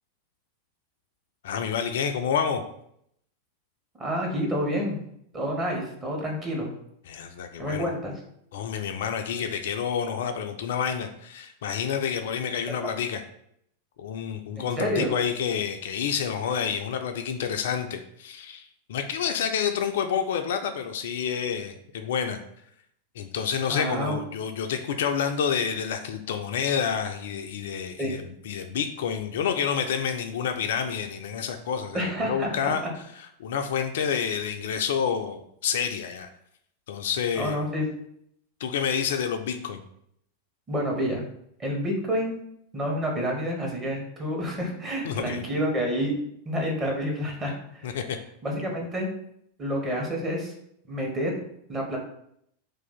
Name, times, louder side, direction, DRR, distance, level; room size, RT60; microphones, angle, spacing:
voice 1, 1.4-2.6 7.1-7.9 8.5-13.2 14.0-22.4 23.2-32.9 33.4-36.3 36.9-37.6 38.6-39.8 45.0-45.4 47.8-48.2, left 7 dB, 55° left, 6 dB, 0.3 m, -29 dB
voice 2, 4.0-5.0 5.3-6.7 7.6-8.2 14.5-15.1 23.7-24.2 28.0-28.2 31.9-32.7 37.3-37.9 40.7-41.2 41.6-42.3 42.7-46.1 46.4-48.0 48.4-49.1 49.6-50.5 50.9-51.3 51.7-52.0, equal, 20° right, -1 dB, 1.0 m, -28 dB
2.7 x 2.4 x 3.9 m, 0.71 s
figure-of-eight pair, 90°, 0 cm